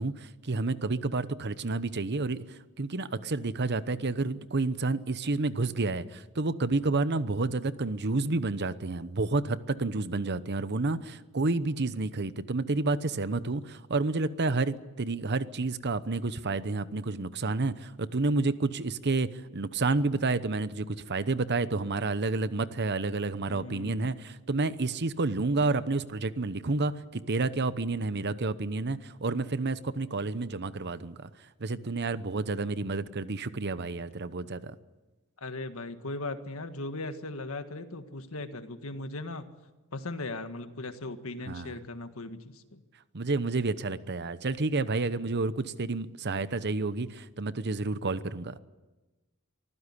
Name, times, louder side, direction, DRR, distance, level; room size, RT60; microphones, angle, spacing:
voice 1, 0.0-31.3 31.6-34.7 41.5-41.8 43.1-48.6, right 3 dB, 50° right, 14 dB, 0.9 m, -30 dB
voice 2, 23.5-24.2 35.4-39.5 39.9-42.8, left 2 dB, 65° left, 8 dB, 1.7 m, -38 dB
24.5 x 15.5 x 9.9 m, 1.2 s
head